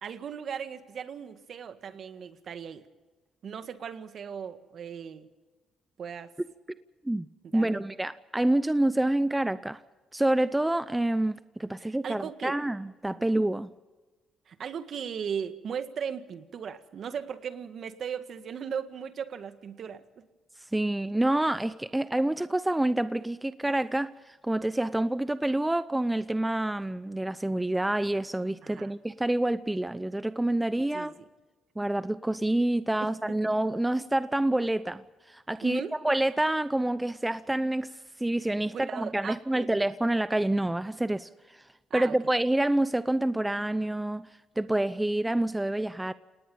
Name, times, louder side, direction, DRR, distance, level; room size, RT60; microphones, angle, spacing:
voice 1, 0.0-2.8 3.4-5.3 6.0-6.3 7.4-7.8 11.8-12.6 13.2-13.3 14.5-20.2 28.6-29.0 30.9-31.1 33.3-33.4 35.6-36.0 38.7-39.7 41.9-42.2, right 7 dB, 60° right, 1.8 m, -37 dB
voice 2, 7.5-9.8 10.1-13.7 20.7-31.1 31.8-37.9 38.2-41.3 41.9-44.3 44.6-46.1, right 1 dB, 10° right, 0.7 m, -27 dB
29.0 x 19.0 x 5.5 m
cardioid pair, 90°, 0 cm